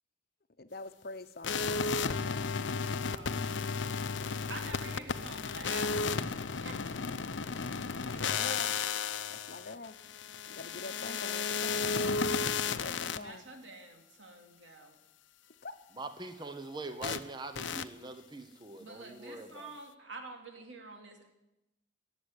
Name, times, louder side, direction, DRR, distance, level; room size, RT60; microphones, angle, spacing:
voice 1, 0.6-2.6 8.0-8.7 9.3-10.0 10.5-11.9 12.5-13.5 15.6-15.8, left 3 dB, 55° left, 10 dB, 0.9 m, -45 dB
sound 1, 1.4-13.2 17.0-17.2 17.6-17.8, left 5 dB, 80° left, 0.7 m, -33 dB
voice 2, 3.0-3.8 4.5-7.1 8.0-8.7 13.2-15.0 18.8-21.3, right 2 dB, 80° right, 3 dB, 2.8 m, -48 dB
voice 3, 16.0-19.7, right 2 dB, 25° right, 9 dB, 0.9 m, -43 dB
18.0 x 8.1 x 9.8 m, 0.95 s
head